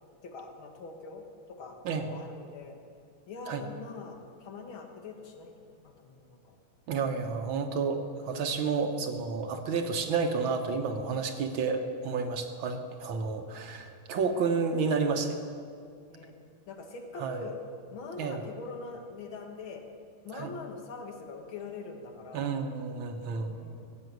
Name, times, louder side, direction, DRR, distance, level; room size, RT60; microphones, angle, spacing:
voice 1, 0.2-1.8 2.1-2.8 3.3-6.6 13.2-13.5 16.1-16.3 16.7-17.6 17.9-19.8 20.2-22.5 23.5-24.0, left 4 dB, 70° left, 3 dB, 2.2 m, -43 dB
voice 2, 6.9-15.4 17.2-17.4 18.2-18.4 20.3-20.5 22.3-23.5, right 5 dB, 70° right, 5 dB, 1.8 m, -30 dB
15.5 x 7.5 x 9.3 m, 2.2 s
omnidirectional pair, 2.4 m